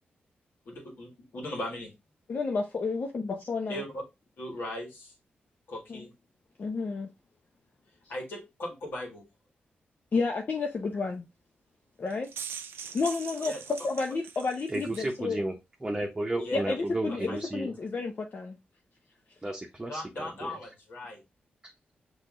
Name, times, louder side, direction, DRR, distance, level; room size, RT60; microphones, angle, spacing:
voice 1, 0.7-1.9 3.7-3.9 4.4-5.1 5.7-6.1 8.1-9.2 13.4-13.6 16.4-16.6 17.1-17.4 19.9-21.2, left 1 dB, 75° left, 1.9 m, -38 dB
voice 2, 2.3-3.8 5.9-6.0 6.6-7.1 10.1-11.2 12.0-12.3 12.9-15.4 16.5-18.6, left 4 dB, 50° left, 0.7 m, -31 dB
sound 1, 12.1-15.1, right 7 dB, 85° right, 0.5 m, -42 dB
voice 3, 14.7-15.5 15.8-17.7 19.4-20.6, right 1 dB, 15° right, 0.9 m, -33 dB
5.7 x 3.1 x 2.5 m
cardioid pair, 70°, 4 cm